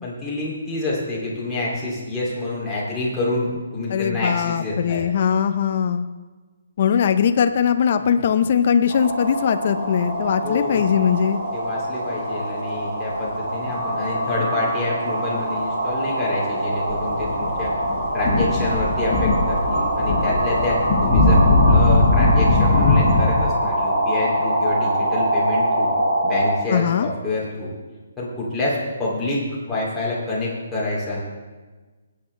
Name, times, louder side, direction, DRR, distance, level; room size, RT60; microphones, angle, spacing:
voice 1, 0.0-5.0 10.4-10.8 11.5-17.7 18.1-25.9 26.2-27.7 28.2-31.2, left 2 dB, 5° left, -9 dB, 2.5 m, -27 dB
voice 2, 3.9-6.1 6.8-11.4 26.7-27.1, left 7 dB, 35° left, 9 dB, 0.6 m, -20 dB
sound 1, 8.9-26.5, right 1 dB, 75° right, 4.5 m, -24 dB
sound 2, 16.7-23.3, left 2 dB, 20° left, 1.6 m, -19 dB
20.0 x 8.6 x 3.2 m, 1.3 s
hypercardioid pair, 175°, 0 cm